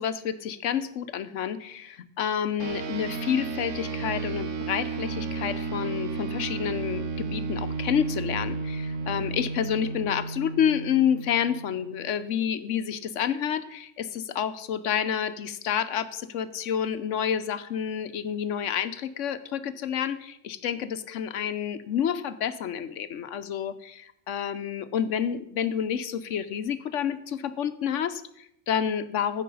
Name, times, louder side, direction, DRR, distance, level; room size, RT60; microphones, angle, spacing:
voice 1, 0.0-29.4, left 8 dB, 85° left, 12 dB, 1.1 m, -29 dB
sound 1, 2.6-12.3, right 4 dB, 90° right, 1.6 m, -33 dB
15.0 x 5.7 x 5.4 m, 0.75 s
omnidirectional pair, 1.2 m